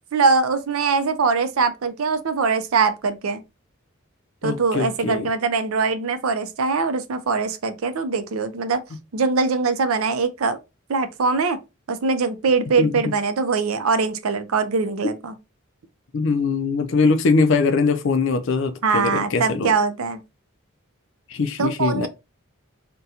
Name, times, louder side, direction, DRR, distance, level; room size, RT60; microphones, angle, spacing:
voice 1, 0.1-3.4 4.4-8.8 9.1-10.6 10.9-11.6 11.9-15.3 18.8-20.2 21.6-22.1, right 4 dB, 80° right, 0.5 m, -22 dB
voice 2, 4.4-5.3 12.8-13.1 15.0-15.1 16.1-19.7 21.3-22.1, left 4 dB, 60° left, 0.4 m, -22 dB
2.8 x 2.2 x 3.6 m
head